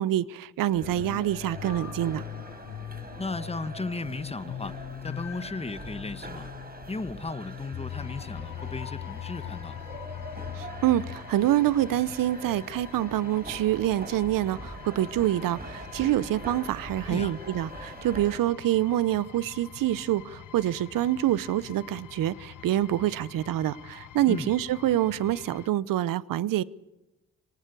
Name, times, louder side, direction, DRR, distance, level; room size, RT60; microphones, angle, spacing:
voice 1, 0.0-2.2 10.6-26.6, right 13 dB, 70° right, 0.9 m, -26 dB
sound 1, 0.7-18.4, right 1 dB, 25° right, 4.6 m, -43 dB
sound 2, 0.8-11.2, left 11 dB, 45° left, 0.8 m, -40 dB
voice 2, 3.2-4.8 5.0-6.5 6.9-9.8 17.0-17.3 24.3-24.5, left 3 dB, 15° left, 1.4 m, -35 dB
sound 3, 7.9-25.7, left 11 dB, 65° left, 1.3 m, -46 dB
24.5 x 19.0 x 6.8 m
supercardioid pair, 50°, 34 cm